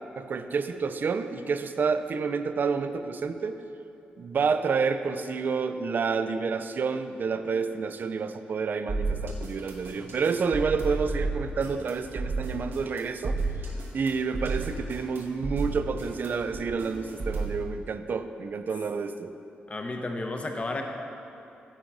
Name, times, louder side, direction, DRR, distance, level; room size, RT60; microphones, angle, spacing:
voice 1, 0.2-3.6 4.2-13.4 13.9-19.3, right 5 dB, 55° right, 10 dB, 0.4 m, -29 dB
sound 1, 8.9-17.6, right 3 dB, 70° right, 1.1 m, -32 dB
voice 2, 19.7-20.8, left 2 dB, 35° left, 4 dB, 0.7 m, -32 dB
8.9 x 3.8 x 4.6 m, 2.8 s
supercardioid pair, 55°, 4 cm